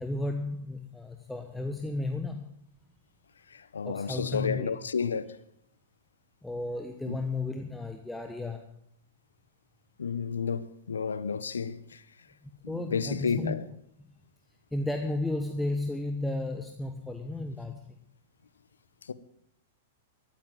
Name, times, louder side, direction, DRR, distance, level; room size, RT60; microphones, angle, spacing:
voice 1, 0.0-2.6 3.8-4.7 6.4-8.8 12.4-13.7 14.7-17.9, left 2 dB, 5° left, 1.1 m, -33 dB
voice 2, 3.5-5.4 7.1-7.2 10.0-12.0 12.7-13.6 19.1-19.2, left 6 dB, 85° left, 0.8 m, -31 dB
14.0 x 8.9 x 7.7 m
hypercardioid pair, 110°, 0 cm